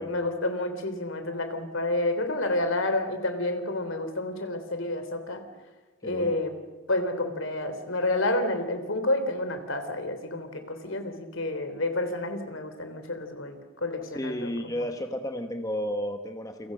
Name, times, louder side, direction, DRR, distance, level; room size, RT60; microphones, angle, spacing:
voice 1, 0.0-5.4 6.0-6.5 6.9-14.7, left 2 dB, 65° left, 8 dB, 3.4 m, -29 dB
voice 2, 6.0-6.4 14.1-16.7, equal, 15° left, 6 dB, 1.2 m, -32 dB
29.0 x 24.0 x 6.5 m, 1.2 s
head